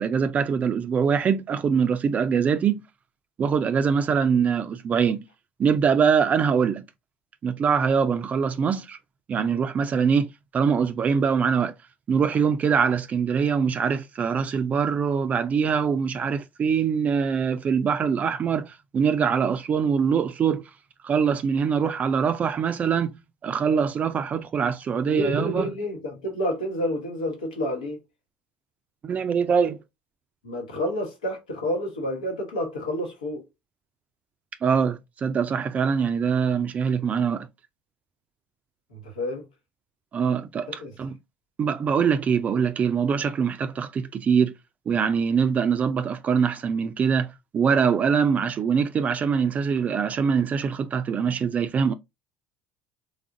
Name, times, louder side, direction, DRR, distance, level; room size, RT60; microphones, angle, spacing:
voice 1, 0.0-2.8 3.4-5.2 5.6-6.8 7.4-9.0 9.3-11.7 12.1-20.6 21.0-25.7 29.0-29.8 34.6-37.5 40.1-41.2 41.6-44.5 44.9-51.9, right 6 dB, 35° right, 0.3 m, -23 dB
voice 2, 25.0-28.0 30.4-33.4 38.9-39.4 40.8-40.9, left 1 dB, 90° left, 1.1 m, -29 dB
3.4 x 2.4 x 2.5 m
hypercardioid pair, 70°, 4 cm